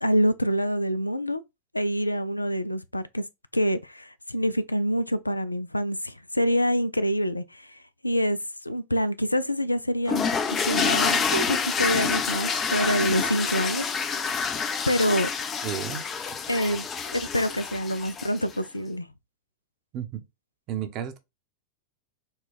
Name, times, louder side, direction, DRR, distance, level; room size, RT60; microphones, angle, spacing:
voice 1, 0.0-1.4 1.7-3.2 3.5-13.9 14.9-15.3 16.5-16.9 17.1-19.1, equal, 85° left, 0.3 m, -26 dB
sound 1, 10.1-18.5, left 5 dB, 25° left, 0.5 m, -27 dB
voice 2, 15.6-16.0 19.9-20.2 20.7-21.2, right 10 dB, 40° right, 0.7 m, -32 dB
4.3 x 2.2 x 3.6 m
figure-of-eight pair, 90°, 0 cm